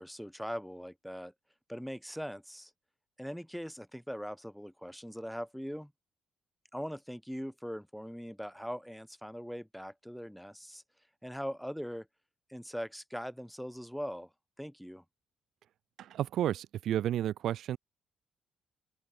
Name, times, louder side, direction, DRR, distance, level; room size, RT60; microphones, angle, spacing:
voice 1, 0.0-1.3 1.7-2.7 3.2-5.9 6.7-10.8 11.2-12.1 12.5-14.3 14.6-15.0, equal, ahead, 5.6 m, -41 dB
voice 2, 16.0-17.8, right 11 dB, 75° right, 2.8 m, -32 dB
open air
cardioid pair, 90°, 0 cm